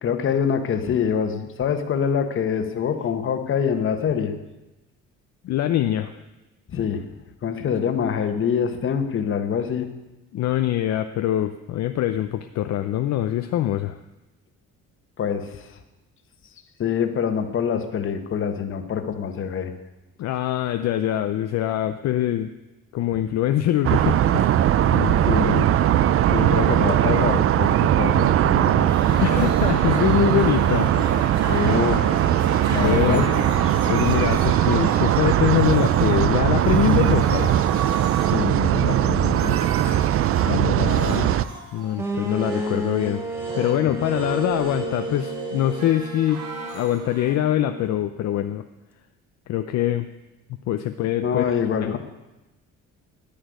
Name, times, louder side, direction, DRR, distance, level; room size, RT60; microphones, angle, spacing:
voice 1, 0.0-4.3 6.7-7.0 7.4-9.9 15.2-15.8 16.8-19.7 24.9-25.7 26.3-28.9 31.4-32.3 32.7-33.5 38.2-39.6 40.4-41.3 51.2-52.0, left 7 dB, 45° left, 7 dB, 1.3 m, -25 dB
voice 2, 5.4-6.1 10.3-14.0 20.2-22.5 22.9-24.5 29.2-31.2 32.8-33.2 33.9-37.5 40.5-40.7 41.7-43.2 43.5-46.4 46.7-48.6 49.5-50.1 50.7-51.5 51.8-51.9, left 12 dB, 60° left, 8 dB, 0.7 m, -23 dB
sound 1, 23.8-41.4, right 11 dB, 50° right, 0.5 m, -20 dB
sound 2, 28.9-36.3 36.6-40.5 40.8-47.4, right 3 dB, 70° right, 4.7 m, -35 dB
sound 3, 42.0-47.8, right 1 dB, 10° right, 1.2 m, -32 dB
10.0 x 10.0 x 9.4 m, 1.0 s
cardioid pair, 170°, 30 cm